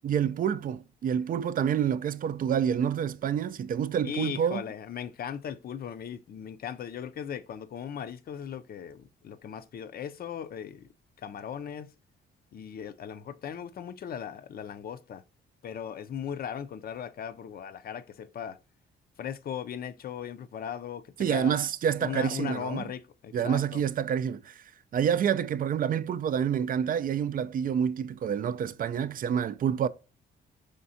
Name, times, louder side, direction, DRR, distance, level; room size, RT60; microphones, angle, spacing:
voice 1, 0.0-4.6 21.2-22.9 23.3-24.6 24.9-29.9, right 8 dB, 45° right, 0.4 m, -28 dB
voice 2, 4.0-10.9 11.2-11.9 12.5-15.2 15.6-18.6 19.2-21.5 22.0-23.8, left 8 dB, 50° left, 0.5 m, -38 dB
5.1 x 3.4 x 2.7 m
cardioid pair, 90°, 20 cm